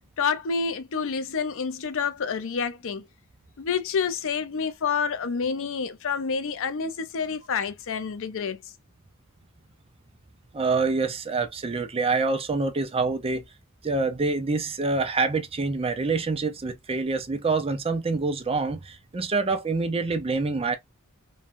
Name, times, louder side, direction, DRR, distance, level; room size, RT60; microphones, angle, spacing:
voice 1, 0.2-3.0 3.6-8.6, left 6 dB, 65° left, 0.5 m, -28 dB
voice 2, 10.5-13.4 13.8-20.8, right 3 dB, 25° right, 0.5 m, -26 dB
3.1 x 2.2 x 2.5 m
head